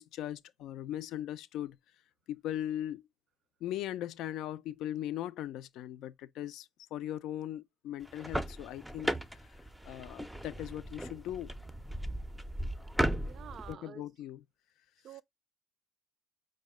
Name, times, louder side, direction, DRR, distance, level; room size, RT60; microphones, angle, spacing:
voice 1, 0.0-1.8 2.3-3.1 3.6-9.2 9.8-11.5 13.7-14.4, left 12 dB, 80° left, 0.4 m, -39 dB
sound 1, 8.0-13.7, right 1 dB, 5° right, 0.5 m, -36 dB
voice 2, 13.2-14.0 15.0-15.2, right 9 dB, 60° right, 0.3 m, -48 dB
4.6 x 2.2 x 3.5 m
supercardioid pair, 80°, 0 cm